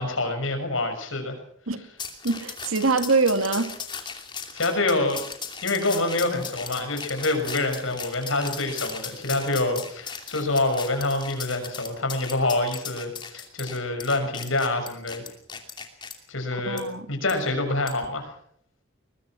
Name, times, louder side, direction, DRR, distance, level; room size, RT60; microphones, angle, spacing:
voice 1, 0.0-1.4 4.5-5.2 5.6-15.2 16.3-16.8 17.1-18.3, left 2 dB, 75° left, 6 dB, 6.4 m, -26 dB
sound 1, 2.0-16.1 16.8-16.9 17.3-17.4 17.9-18.1, left 6 dB, 20° left, 2.8 m, -37 dB
voice 2, 2.2-3.7 16.7-17.1, right 3 dB, 90° right, 9 dB, 2.2 m, -23 dB
22.5 x 21.5 x 6.0 m, 0.63 s
head